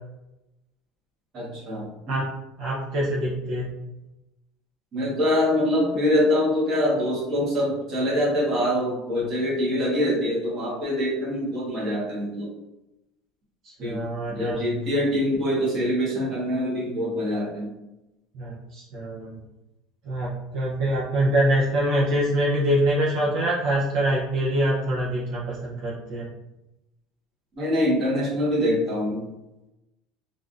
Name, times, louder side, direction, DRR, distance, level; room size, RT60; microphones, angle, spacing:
voice 1, 1.3-1.9 4.9-12.5 13.8-14.0 14.3-17.7 27.6-29.2, left 1 dB, 35° right, -5 dB, 1.2 m, -24 dB
voice 2, 2.6-3.7 13.6-14.6 18.3-19.4 20.0-26.3, right 1 dB, 60° right, -5 dB, 0.6 m, -25 dB
3.4 x 2.5 x 2.4 m, 0.97 s
cardioid pair, 155°, 0 cm